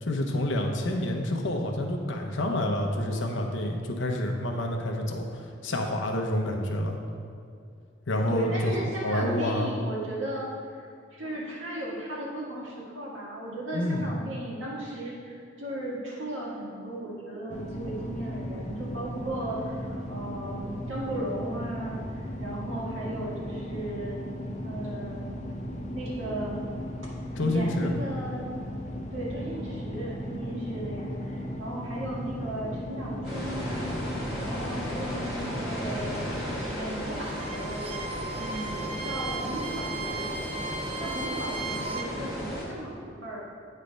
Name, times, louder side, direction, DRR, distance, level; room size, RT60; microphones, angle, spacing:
voice 1, 0.0-7.0 8.1-9.7 13.7-14.1 27.4-27.9, left 1 dB, 70° left, 2 dB, 0.8 m, -28 dB
voice 2, 8.3-24.2 24.6-25.3 25.9-26.6 27.1-28.4 29.1-34.0 34.4-36.2 36.7-40.2 41.0-43.4, right 1 dB, 85° right, -4 dB, 1.7 m, -36 dB
sound 1, 17.5-36.6, equal, 40° left, 0.6 m, -36 dB
sound 2, 33.2-42.7, equal, 5° right, 1.5 m, -35 dB
Bowed string instrument, 37.1-42.1, right 4 dB, 30° right, 0.4 m, -36 dB
8.4 x 3.3 x 5.2 m, 2.3 s
head